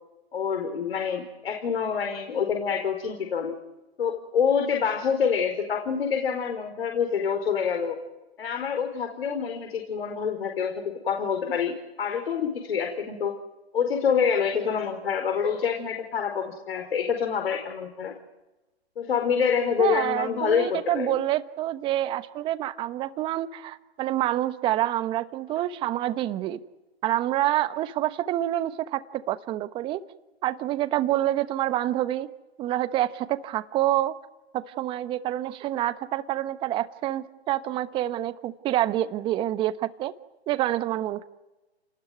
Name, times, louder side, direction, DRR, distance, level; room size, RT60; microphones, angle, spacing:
voice 1, 0.3-3.6 4.0-8.0 8.4-13.3 13.7-18.1 19.0-21.2, left 7 dB, 60° left, 4 dB, 4.8 m, -26 dB
voice 2, 19.8-26.6 27.0-30.0 30.4-32.3 32.6-34.1 34.5-40.1 40.5-41.2, right 13 dB, 15° right, 13 dB, 1.1 m, -27 dB
29.5 x 20.0 x 9.5 m, 1.0 s
hypercardioid pair, 145°, 33 cm